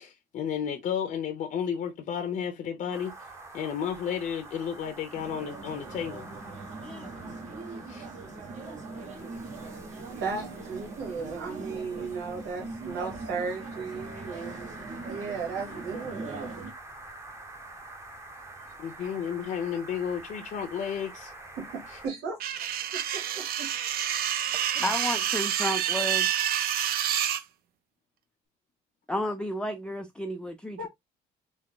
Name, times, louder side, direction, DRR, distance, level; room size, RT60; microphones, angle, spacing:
voice 1, 0.0-3.1 3.5-6.3 7.9-8.1 18.8-21.3 24.8-24.9, left 8 dB, 50° left, 0.7 m, -32 dB
sound 1, 2.9-22.1, right 2 dB, 15° right, 0.9 m, -47 dB
sound 2, 5.1-16.7, right 3 dB, 45° right, 1.1 m, -41 dB
voice 2, 10.1-14.8 15.0-16.5 19.1-19.3 21.6-23.9 30.8-30.9, right 4 dB, 90° right, 1.0 m, -36 dB
sound 3, 22.4-27.4, right 10 dB, 65° right, 0.5 m, -28 dB
voice 3, 24.8-26.3 29.1-30.9, left 1 dB, 5° left, 0.4 m, -32 dB
3.6 x 2.0 x 3.7 m
cardioid pair, 110°, 17 cm